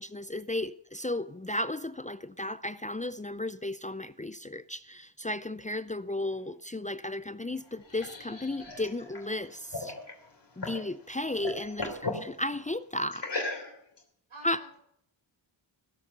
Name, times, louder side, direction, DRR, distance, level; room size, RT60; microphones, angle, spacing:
voice 1, 0.0-10.0 10.6-11.9 12.2-13.3 14.4-14.6, left 1 dB, 15° left, 0.5 m, -34 dB
voice 2, 6.2-6.5 11.8-12.2 14.3-14.8, right 2 dB, 85° right, 6.8 m, -49 dB
sound 1, 7.5-10.9 11.2-12.3 13.1-14.0, left 2 dB, 55° left, 3.3 m, -37 dB
15.5 x 7.3 x 6.7 m
cardioid pair, 40°, 49 cm